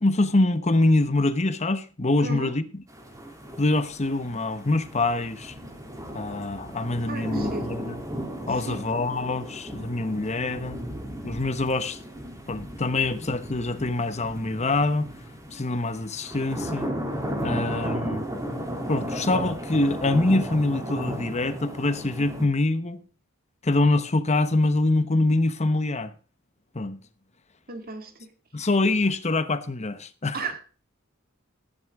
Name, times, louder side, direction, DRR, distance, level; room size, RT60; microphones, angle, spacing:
voice 1, 0.0-2.6 3.6-5.5 6.1-8.0 8.5-10.8 11.2-12.0 12.5-15.1 15.5-16.9 17.4-18.2 18.9-23.0 23.6-26.1 26.7-27.0 28.5-30.5, left 2 dB, 30° left, 1.0 m, -24 dB
voice 2, 2.2-2.5 7.1-7.7 8.6-8.8 27.7-28.3 30.3-30.6, right 3 dB, 45° right, 2.2 m, -34 dB
sound 1, 2.9-22.5, equal, 15° right, 2.9 m, -35 dB
12.5 x 10.5 x 3.6 m
head